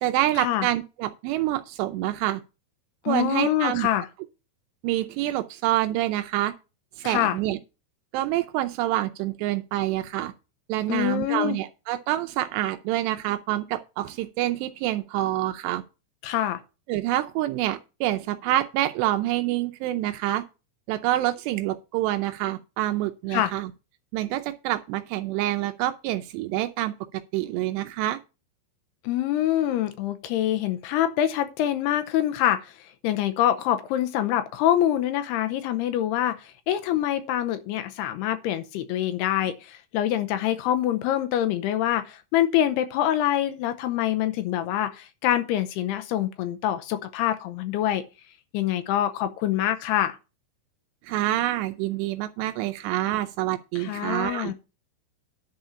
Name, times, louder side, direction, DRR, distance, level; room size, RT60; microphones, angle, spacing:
voice 1, 0.0-2.4 3.1-3.9 4.8-6.5 7.0-7.6 8.1-10.3 10.7-15.8 16.9-20.4 20.9-23.7 24.1-28.2 51.0-54.5, right 14 dB, 85° right, 2.7 m, -27 dB
voice 2, 3.1-4.1 7.0-7.4 10.9-11.6 16.2-16.6 23.3-23.5 29.0-48.0 48.5-50.2 53.8-54.5, left 12 dB, 80° left, 2.6 m, -25 dB
10.5 x 4.4 x 6.9 m
omnidirectional pair, 4.9 m